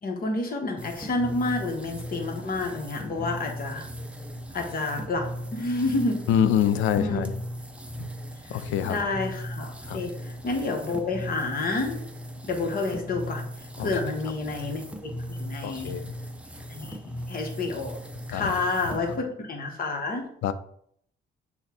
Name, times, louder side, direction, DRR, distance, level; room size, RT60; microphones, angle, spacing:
voice 1, 0.0-3.8 4.5-5.3 5.5-6.2 7.0-7.2 8.5-12.0 12.4-13.5 13.8-15.9 16.7-18.0 18.3-20.2, left 3 dB, 45° left, 2 dB, 1.1 m, -29 dB
sound 1, 0.8-19.2, equal, 5° right, 0.5 m, -38 dB
voice 2, 6.3-7.3 8.0-8.1 8.5-9.0 9.8-10.0 13.8-13.9 15.6-16.1 18.3-18.5 20.4-20.5, left 9 dB, 80° left, 12 dB, 0.4 m, -25 dB
6.3 x 2.3 x 3.6 m, 0.68 s
cardioid pair, 90°, 20 cm